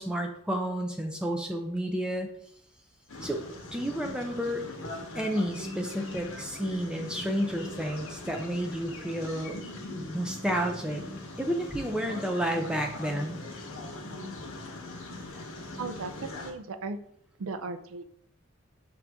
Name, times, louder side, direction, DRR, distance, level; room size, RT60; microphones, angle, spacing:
voice 1, 0.0-2.3 3.2-3.4 3.7-4.6 5.1-9.6 10.1-11.0 11.4-13.4, equal, 5° right, 2 dB, 0.4 m, -31 dB
sound 1, 3.1-16.5, left 2 dB, 85° left, 1.0 m, -40 dB
voice 2, 15.8-17.0 17.4-18.0, right 4 dB, 80° right, 10 dB, 0.4 m, -36 dB
5.8 x 2.6 x 3.4 m, 0.69 s
head